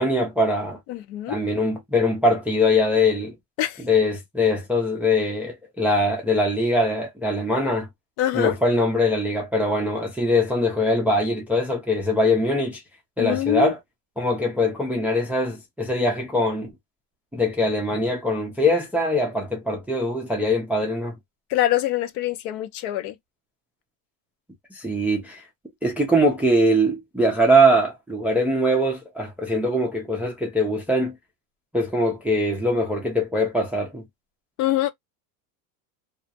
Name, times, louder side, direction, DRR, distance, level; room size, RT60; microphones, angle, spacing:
voice 1, 0.0-0.8 1.3-3.4 3.8-7.9 8.3-12.8 13.2-13.8 14.2-16.7 17.3-21.2 24.7-25.4 25.8-31.2 31.7-34.0, left 1 dB, 5° right, 0.3 m, -22 dB
voice 2, 0.9-1.4 3.6-3.8 8.2-8.6 13.2-13.7 21.5-23.2 34.6-34.9, left 14 dB, 60° left, 0.6 m, -24 dB
2.3 x 2.0 x 2.6 m
supercardioid pair, 130°, 46 cm